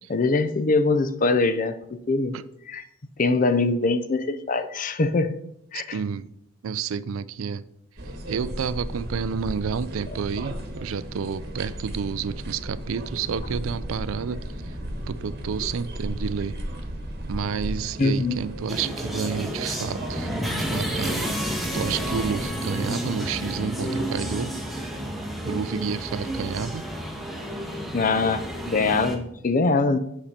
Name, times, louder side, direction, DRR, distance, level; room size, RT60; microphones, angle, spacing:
voice 1, 0.1-2.3 2.7-2.8 3.2-5.3 5.7-6.0 18.0-18.4 27.9-30.0, left 3 dB, 40° left, 0.5 m, -23 dB
voice 2, 5.7-6.3 6.6-7.6 8.3-14.8 15.1-16.5 17.3-24.5 25.4-26.8, right 6 dB, 75° right, 0.4 m, -30 dB
sound 1, 8.0-22.5, right 1 dB, 50° right, 1.2 m, -35 dB
sound 2, 18.7-29.2, equal, ahead, 0.9 m, -31 dB
6.6 x 5.8 x 4.2 m
head